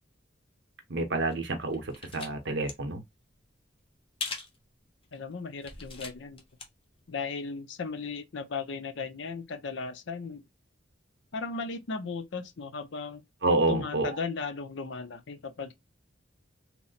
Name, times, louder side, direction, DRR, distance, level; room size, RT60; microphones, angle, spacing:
voice 1, 0.9-3.0 13.4-14.1, right 2 dB, 60° right, 0.8 m, -28 dB
sound 1, 1.3-2.3 2.6-2.7 4.2-4.6 5.0-5.2 5.6-6.6 7.0-7.1, left 4 dB, 30° left, 0.7 m, -39 dB
voice 2, 5.1-6.4 7.1-10.4 11.3-13.2 13.7-15.7, left 4 dB, 65° left, 0.5 m, -36 dB
3.0 x 2.0 x 3.9 m
head